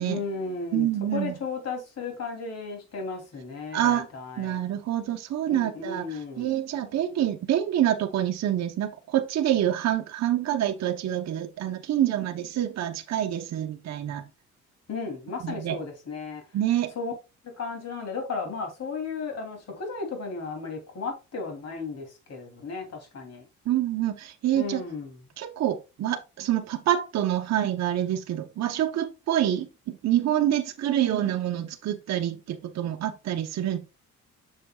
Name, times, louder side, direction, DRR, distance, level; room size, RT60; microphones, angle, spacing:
voice 1, 0.0-4.6 5.5-6.5 14.9-16.4 16.9-17.1 17.6-23.5 24.5-25.2, left 4 dB, 55° left, 2.9 m, -34 dB
voice 2, 0.7-1.3 3.7-4.1 4.4-14.2 15.4-15.8 16.5-16.9 23.7-24.8 25.4-33.8, right 11 dB, 60° right, 0.8 m, -27 dB
7.5 x 6.5 x 2.3 m
cardioid pair, 90°, 30 cm